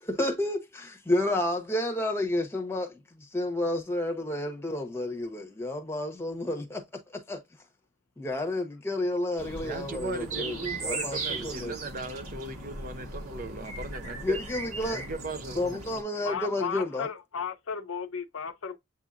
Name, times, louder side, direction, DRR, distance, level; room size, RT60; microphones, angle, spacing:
voice 1, 0.0-6.8 7.1-7.4 8.2-11.7 14.2-15.0 15.5-17.1, left 1 dB, 10° left, 0.9 m, -31 dB
sound 1, 9.4-16.0, right 2 dB, 85° right, 1.7 m, -38 dB
voice 2, 9.6-14.4 14.9-15.8, right 3 dB, 40° right, 0.5 m, -38 dB
voice 3, 16.2-18.8, left 6 dB, 65° left, 0.6 m, -34 dB
8.1 x 2.7 x 2.4 m
head